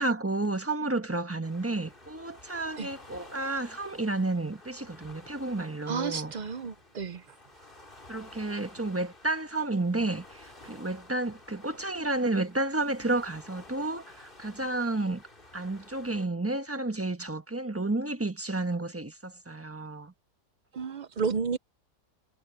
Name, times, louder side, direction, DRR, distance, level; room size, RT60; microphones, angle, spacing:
voice 1, 0.0-6.3 8.1-15.2 15.5-20.1, right 2 dB, 10° right, 1.1 m, -31 dB
Waves surf, 1.4-16.3, left 2 dB, 35° left, 3.7 m, -52 dB
voice 2, 5.9-7.2 20.7-21.6, right 5 dB, 90° right, 0.4 m, -32 dB
omnidirectional pair, 1.6 m